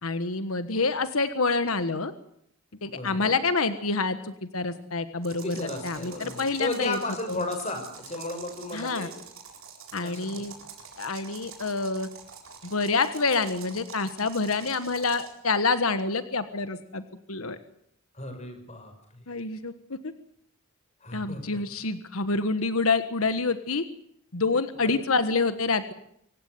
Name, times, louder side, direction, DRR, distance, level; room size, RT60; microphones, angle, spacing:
voice 1, 0.0-2.1 2.8-7.0 7.3-7.4 8.7-9.1 9.9-10.5 11.0-12.1 12.6-17.0 17.3-17.6 19.3-20.1 21.1-23.8 24.3-25.9, left 3 dB, 90° left, 11 dB, 1.5 m, -27 dB
voice 2, 2.9-3.4 5.3-9.1 10.0-10.7 18.1-19.2 21.0-21.4 24.8-24.9, left 2 dB, 35° left, 6 dB, 5.8 m, -35 dB
sound 1, 5.2-15.4, right 6 dB, 75° right, 7.6 m, -46 dB
26.0 x 16.5 x 9.5 m, 0.71 s
head